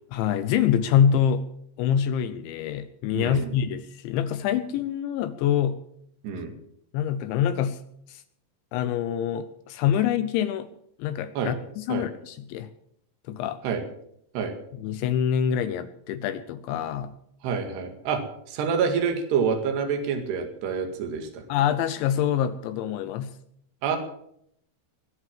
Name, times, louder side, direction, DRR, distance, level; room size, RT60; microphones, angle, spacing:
voice 1, 0.1-1.5 1.8-5.8 6.9-7.8 8.1-8.2 8.7-10.7 11.0-12.7 13.2-13.6 14.7-17.1 21.5-23.4, left 9 dB, 80° left, 12 dB, 2.8 m, -25 dB
voice 2, 3.1-3.6 6.2-6.5 11.4-11.6 11.9-12.1 13.6-13.8 14.3-14.5 17.4-18.2 18.5-21.4 23.8-24.0, right 6 dB, 60° right, 5 dB, 3.9 m, -27 dB
21.5 x 8.2 x 7.4 m, 0.71 s
omnidirectional pair, 5.9 m